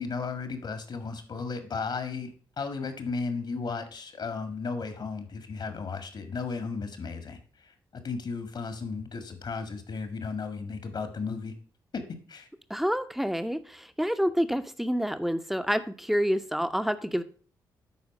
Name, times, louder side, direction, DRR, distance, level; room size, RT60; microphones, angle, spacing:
voice 1, 0.0-11.5 11.9-12.0 12.3-12.5, left 4 dB, 60° left, 9 dB, 1.8 m, -35 dB
voice 2, 12.7-17.2, equal, 5° right, 10 dB, 0.9 m, -28 dB
11.0 x 4.3 x 5.4 m, 0.43 s
supercardioid pair, 55°, 8 cm